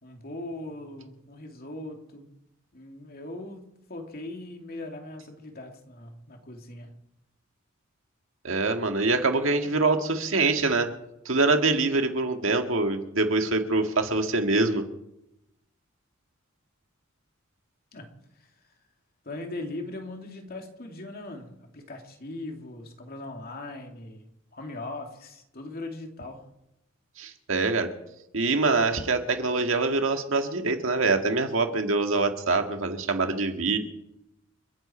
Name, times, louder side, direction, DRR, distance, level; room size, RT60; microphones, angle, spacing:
voice 1, 0.0-2.3 2.7-7.0 17.9-18.1 18.4-18.5 19.2-26.4, left 2 dB, 45° left, 3 dB, 2.7 m, -40 dB
voice 2, 8.4-10.9 11.3-14.8 27.2-27.9 28.3-33.8, right 3 dB, 70° right, 5 dB, 1.9 m, -24 dB
30.0 x 10.5 x 4.4 m, 0.85 s
head